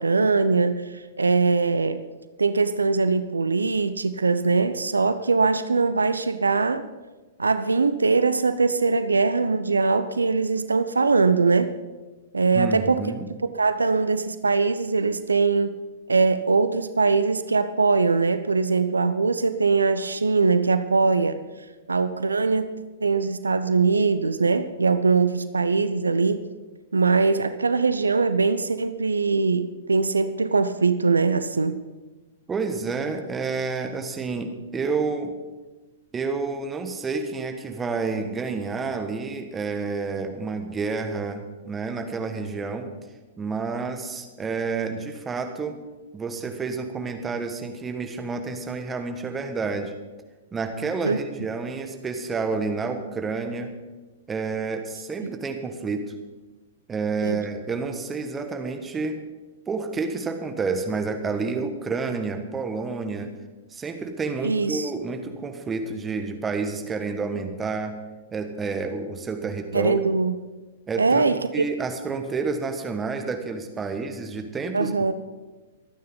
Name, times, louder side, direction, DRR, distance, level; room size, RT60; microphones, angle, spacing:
voice 1, 0.0-2.0 2.4-6.9 7.4-11.7 12.3-13.0 13.5-15.8 16.1-21.4 21.9-22.7 23.0-26.4 26.9-31.8 51.0-51.2 57.2-57.4 64.4-64.9 69.7-70.4 71.0-71.5 74.7-75.1, right 4 dB, 80° right, 12 dB, 0.6 m, -22 dB
voice 2, 12.5-13.3 32.5-35.3 36.1-42.9 43.4-45.8 46.1-49.9 50.5-53.7 54.3-56.1 56.9-59.2 59.7-63.3 63.7-68.0 68.3-70.1 70.9-75.1, right 4 dB, 15° right, 6 dB, 1.7 m, -29 dB
24.5 x 9.5 x 4.0 m, 1.2 s
figure-of-eight pair, 110°, 0 cm